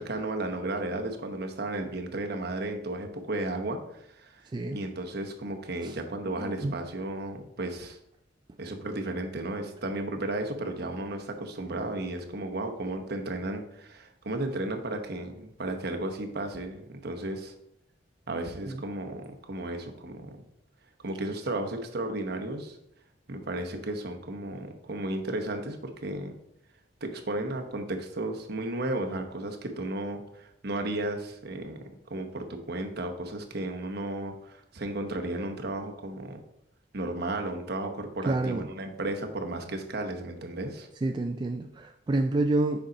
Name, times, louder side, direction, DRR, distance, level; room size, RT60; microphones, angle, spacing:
voice 1, 0.0-4.5 4.7-8.0 8.6-17.5 18.3-20.4 21.0-22.8 23.3-26.4 27.0-31.8 32.1-36.4 36.9-40.9, right 2 dB, 60° right, 4 dB, 0.9 m, -34 dB
voice 2, 6.4-6.8 18.6-18.8 38.3-38.7 41.0-42.9, right 2 dB, 25° right, 5 dB, 0.3 m, -28 dB
7.0 x 5.2 x 3.9 m, 0.77 s
head